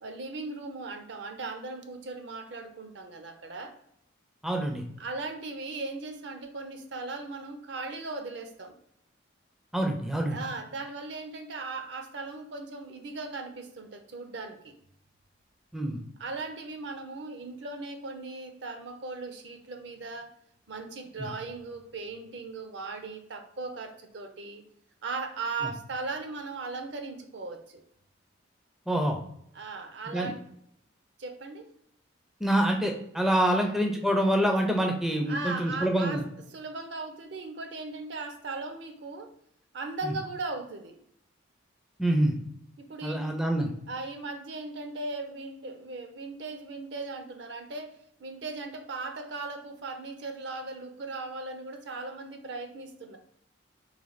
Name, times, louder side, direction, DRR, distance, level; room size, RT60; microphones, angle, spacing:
voice 1, 0.0-3.7 5.0-8.8 10.3-14.7 16.2-20.3 20.7-24.6 25.0-27.8 29.5-30.4 31.2-31.6 33.6-33.7 35.3-36.2 36.5-39.3 39.7-41.0 42.8-43.4 43.9-53.2, right 3 dB, 60° right, 6 dB, 0.5 m, -38 dB
voice 2, 4.4-4.8 9.7-10.4 15.7-16.0 21.2-21.3 28.9-29.2 30.1-30.3 32.4-36.2 42.0-42.3 43.0-43.7, right 1 dB, ahead, 2 dB, 0.4 m, -26 dB
3.2 x 3.1 x 3.9 m, 0.72 s
head